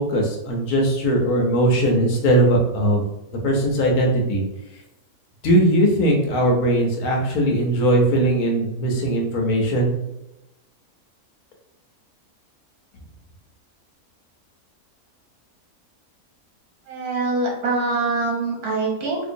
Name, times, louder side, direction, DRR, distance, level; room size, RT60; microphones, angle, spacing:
voice 1, 0.0-3.0 3.4-4.4 5.4-9.9, right 1 dB, 85° left, 1 dB, 1.3 m, -19 dB
voice 2, 16.9-19.3, right 3 dB, 80° right, -1 dB, 1.4 m, -24 dB
3.6 x 3.0 x 2.6 m, 0.91 s
omnidirectional pair, 1.5 m